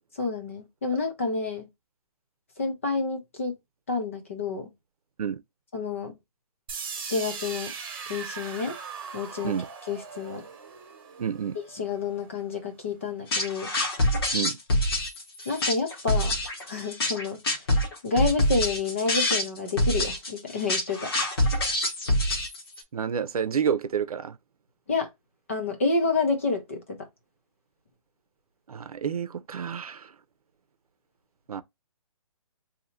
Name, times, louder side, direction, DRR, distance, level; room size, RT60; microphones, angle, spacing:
voice 1, 0.2-1.7 2.6-3.5 3.9-4.7 5.7-6.2 7.1-7.7 8.1-8.8 9.1-9.5 9.9-10.5 11.7-13.7 15.5-16.4 16.7-17.4 18.0-21.1 24.9-25.1 25.5-27.1, left 4 dB, 20° left, 0.5 m, -29 dB
sound 1, 6.7-12.6, right 6 dB, 40° right, 1.1 m, -39 dB
voice 2, 11.2-11.6 14.3-14.6 22.9-24.4 28.7-30.1 31.5-31.6, right 7 dB, 80° right, 0.7 m, -29 dB
sound 2, 13.3-22.8, left 1 dB, 40° left, 1.2 m, -26 dB
2.8 x 2.7 x 4.2 m
hypercardioid pair, 180°, 18 cm